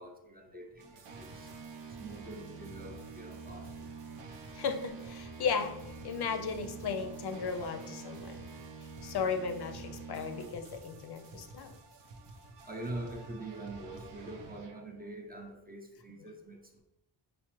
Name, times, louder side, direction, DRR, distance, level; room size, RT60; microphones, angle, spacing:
voice 1, 0.0-1.5 2.0-4.2 12.7-16.8, right 2 dB, 20° right, 2 dB, 0.5 m, -45 dB
sound 1, 0.8-15.1, right 4 dB, 70° right, 0.6 m, -47 dB
voice 2, 4.5-8.5 9.0-11.8, left 5 dB, 60° left, 7 dB, 0.5 m, -35 dB
4.8 x 2.0 x 3.0 m, 0.91 s
cardioid pair, 80°, 45 cm